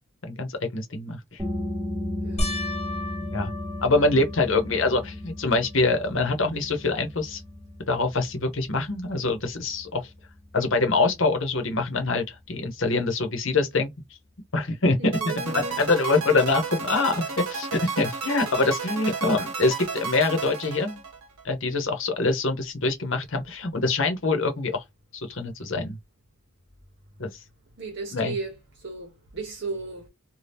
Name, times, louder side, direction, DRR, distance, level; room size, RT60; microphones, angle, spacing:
voice 1, 0.2-1.4 3.3-3.5 3.8-7.4 7.9-10.1 10.5-13.9 14.5-15.0 15.5-21.0 21.4-24.8 25.1-26.0 27.2-27.3 28.1-28.3, left 3 dB, 60° left, 0.9 m, -25 dB
sound 1, 1.4-12.8, left 1 dB, 15° right, 0.7 m, -36 dB
sound 2, 2.4-5.0 5.6-6.2 6.5-6.6 9.8-9.9, left 1 dB, 30° left, 0.8 m, -34 dB
voice 2, 15.0-15.8 27.8-30.1, right 3 dB, 50° right, 0.9 m, -35 dB
sound 3, 15.1-21.4, right 5 dB, 75° right, 0.8 m, -32 dB
2.8 x 2.3 x 3.4 m
head